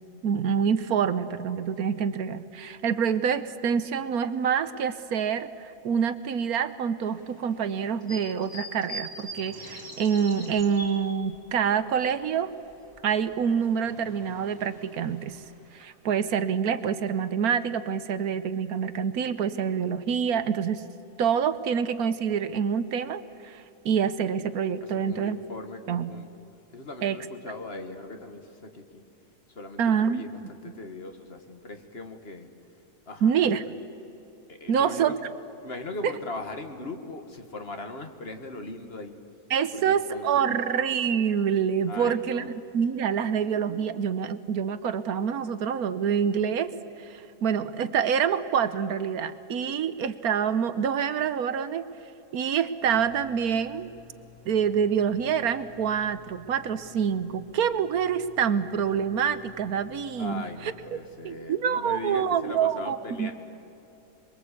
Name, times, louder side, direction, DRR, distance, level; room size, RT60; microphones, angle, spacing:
voice 1, 0.2-12.5 13.0-15.4 15.7-20.8 21.2-25.4 25.9-26.1 27.0-27.2 29.8-30.2 33.2-33.6 34.7-35.1 36.0-36.1 39.5-46.7 47.0-51.9 52.3-53.9 54.5-61.0 61.2-63.3, right 7 dB, 70° right, 13 dB, 1.3 m, -26 dB
sound 1, 7.0-11.6 11.9-13.0 13.3-15.8, equal, 10° left, 5.4 m, -43 dB
voice 2, 24.8-26.3 26.7-29.0 29.5-32.5 33.1-33.5 34.5-35.1 35.6-39.2 39.7-40.6 41.9-42.6 60.2-63.3, left 2 dB, 40° left, 6 dB, 2.0 m, -39 dB
sound 2, 52.8-60.9, left 9 dB, 55° left, 2.9 m, -53 dB
26.5 x 22.0 x 8.4 m, 2.8 s
omnidirectional pair, 1.7 m